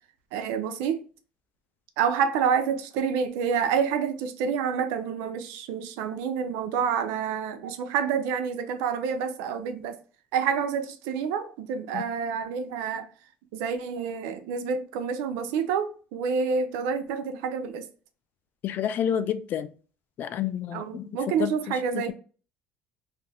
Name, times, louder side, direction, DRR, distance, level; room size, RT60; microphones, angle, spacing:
voice 1, 0.3-1.0 2.0-10.0 10.3-13.1 13.5-17.9 20.7-22.1, right 6 dB, 85° right, 0.5 m, -28 dB
voice 2, 18.6-19.7 20.2-21.0 21.4-21.7, left 9 dB, 50° left, 0.4 m, -29 dB
2.7 x 2.5 x 3.3 m
cardioid pair, 115°, 4 cm